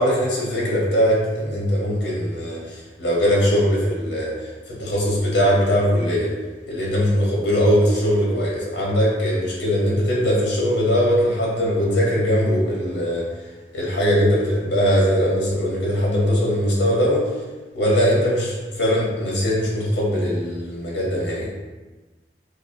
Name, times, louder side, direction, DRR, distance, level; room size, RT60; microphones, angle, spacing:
voice 1, 0.0-2.6 3.0-4.3 4.8-6.3 6.7-13.2 13.7-17.2 17.7-21.5, equal, 85° left, -4 dB, 1.0 m, -20 dB
5.4 x 2.1 x 2.5 m, 1.2 s
head